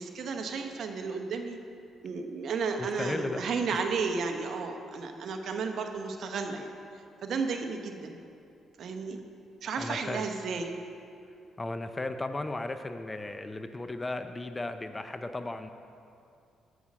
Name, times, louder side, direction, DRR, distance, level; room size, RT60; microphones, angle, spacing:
voice 1, 0.0-1.6 2.0-6.7 7.2-8.2 8.8-9.2 9.6-10.7, right 4 dB, 65° right, 5 dB, 0.9 m, -33 dB
voice 2, 2.8-3.4 3.7-3.8 9.8-10.2 11.6-15.7, left 2 dB, 20° left, 8 dB, 0.5 m, -35 dB
8.2 x 7.2 x 6.3 m, 2.6 s
cardioid pair, 90°, 0 cm